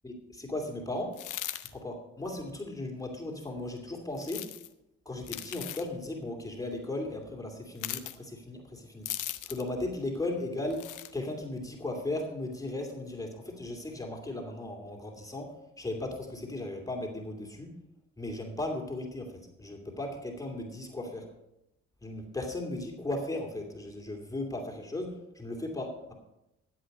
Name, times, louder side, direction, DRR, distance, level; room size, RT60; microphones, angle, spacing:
voice 1, 0.0-1.1 1.7-4.5 5.0-9.1 9.5-17.7 18.2-21.3 22.0-26.1, left 2 dB, 10° left, 1 dB, 2.7 m, -36 dB
sound 1, 1.1-1.7 4.2-4.7 5.2-5.9 7.8-8.2 9.1-9.7 10.7-11.1, left 13 dB, 80° left, 0.9 m, -38 dB
13.5 x 8.1 x 5.4 m, 0.86 s
cardioid pair, 90°, 30 cm